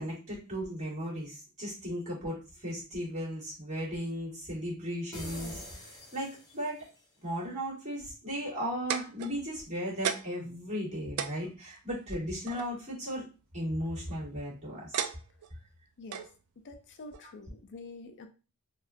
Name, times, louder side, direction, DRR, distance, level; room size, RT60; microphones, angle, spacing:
voice 1, 0.0-6.9 7.2-13.2 13.5-15.0, equal, 30° right, -7 dB, 1.8 m, -36 dB
sound 1, 5.1-6.9, left 1 dB, 20° left, 1.0 m, -44 dB
sound 2, 8.5-9.6 10.0-10.5 10.8-10.9 11.2-12.7 13.8-14.2 14.9-15.5 16.1-16.3 17.1-17.2, right 8 dB, 90° right, 0.4 m, -35 dB
voice 2, 16.0-18.3, left 3 dB, 55° left, 6 dB, 0.4 m, -47 dB
4.2 x 2.4 x 2.5 m, 0.34 s
head